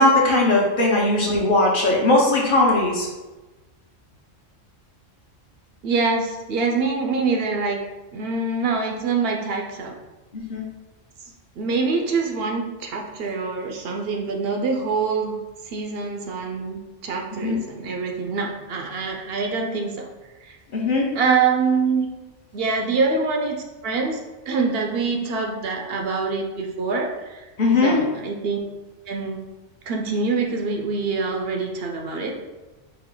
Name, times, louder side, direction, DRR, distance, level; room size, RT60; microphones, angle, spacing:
voice 1, 0.0-3.1 10.3-10.7 17.4-17.6 20.7-21.1 27.6-28.0, left 2 dB, 50° left, -2 dB, 0.9 m, -19 dB
voice 2, 5.8-7.8 8.1-9.9 11.6-15.4 15.6-20.1 20.4-20.6 21.1-22.1 22.5-24.2 24.5-27.5 27.8-28.6 29.1-29.4 29.9-32.4, right 4 dB, 60° right, 2 dB, 0.7 m, -25 dB
4.3 x 2.4 x 3.8 m, 1.1 s
omnidirectional pair, 1.3 m